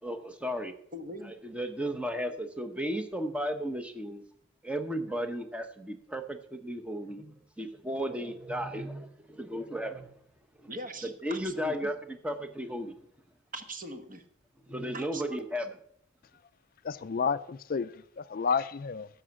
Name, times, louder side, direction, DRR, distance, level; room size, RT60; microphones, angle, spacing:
voice 1, 0.0-0.8 1.2-4.2 4.6-7.3 7.6-10.1 10.6-10.7 11.0-11.9 12.2-13.0 14.7-15.7, equal, 5° right, 0.9 m, -34 dB
voice 2, 0.9-1.3 10.7-11.9 13.5-14.2 14.9-15.4, right 1 dB, 40° right, 1.3 m, -41 dB
voice 3, 16.8-19.1, left 5 dB, 45° left, 0.3 m, -31 dB
11.0 x 6.9 x 7.6 m
head